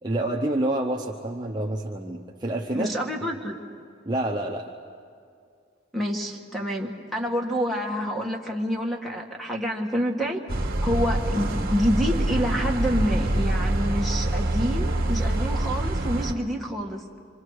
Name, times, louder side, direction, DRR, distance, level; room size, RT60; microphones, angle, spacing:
voice 1, 0.0-2.9 4.0-4.6, right 1 dB, 20° right, -1 dB, 0.8 m, -28 dB
voice 2, 2.7-3.6 5.9-17.0, equal, ahead, 0 dB, 1.5 m, -28 dB
sound 1, 10.5-16.3, right 1 dB, 50° right, 1.7 m, -25 dB
26.5 x 25.5 x 4.8 m, 2.3 s
head